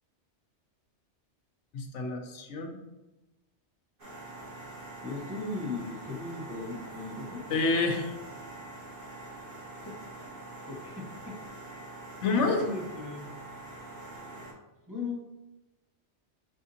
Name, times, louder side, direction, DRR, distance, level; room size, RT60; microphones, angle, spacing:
voice 1, 1.7-2.8 7.5-8.1 12.2-12.7, left 3 dB, 85° left, 4 dB, 1.0 m, -28 dB
sound 1, 4.0-14.5, right 2 dB, 50° right, 1.7 m, -45 dB
voice 2, 5.0-7.4 9.8-9.9 10.7-11.1 12.4-13.3 14.9-15.2, left 3 dB, 15° right, -5 dB, 1.3 m, -37 dB
5.0 x 3.6 x 2.8 m, 1.0 s
omnidirectional pair, 1.2 m